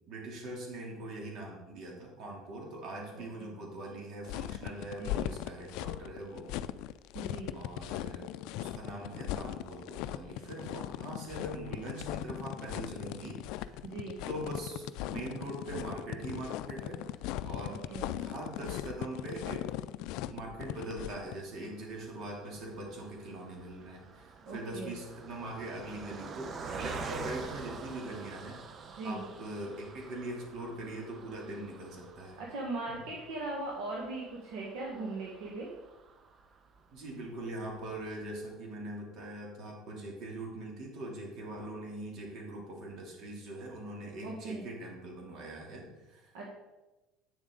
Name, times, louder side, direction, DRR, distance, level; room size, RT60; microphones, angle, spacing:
voice 1, 0.1-6.5 7.5-8.3 8.6-13.8 14.3-17.1 17.4-17.8 18.2-19.9 20.2-28.6 29.0-32.4 36.9-46.3, right 1 dB, 60° right, -1 dB, 2.9 m, -42 dB
voice 2, 3.1-3.5 5.0-5.3 7.1-7.5 13.8-14.2 17.7-18.1 24.4-24.9 29.0-29.2 32.4-35.7 44.2-44.6 46.3-46.4, right 2 dB, 80° right, -3 dB, 1.6 m, -39 dB
sound 1, 4.3-21.3, left 13 dB, 70° left, 0.3 m, -38 dB
Car passing by, 21.5-37.0 37.5-37.6 37.8-38.0, right 4 dB, 40° right, 0.9 m, -47 dB
8.7 x 7.1 x 3.9 m, 1.1 s
supercardioid pair, 100°, 0 cm